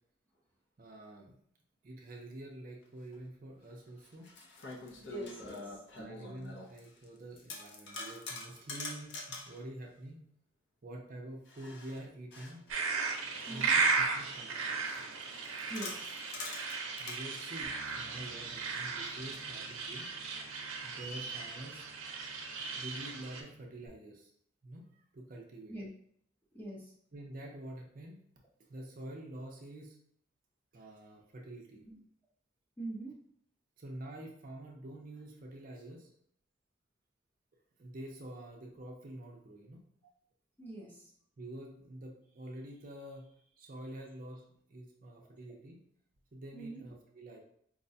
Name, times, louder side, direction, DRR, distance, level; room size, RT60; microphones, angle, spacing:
voice 1, 0.8-1.3 1.8-4.3 6.0-10.2 10.8-12.6 13.4-14.9 17.0-20.1 20.8-22.1 22.8-24.3 24.6-24.9 25.1-25.8 27.1-28.2 28.7-30.0 30.7-31.8 33.8-36.1 37.8-39.8 41.4-45.8 46.3-47.4, right 1 dB, 40° right, 0 dB, 0.5 m, -47 dB
sound 1, 3.1-3.2 4.0-7.1 7.4-9.6 11.5-14.4 14.9-17.2 18.2-19.5, left 3 dB, 55° left, 0.6 m, -46 dB
voice 2, 4.8-6.2 13.5-13.8 15.7-16.1 25.7-25.9 26.5-26.9 31.9-32.0 32.8-33.1 40.6-41.1 46.5-46.8, right 2 dB, 10° left, -3 dB, 0.6 m, -44 dB
sound 2, 12.7-23.4, right 4 dB, 90° right, 0.6 m, -35 dB
Bass guitar, 17.6-23.9, right 3 dB, 75° left, 1.1 m, -60 dB
4.7 x 2.2 x 2.7 m, 0.67 s
head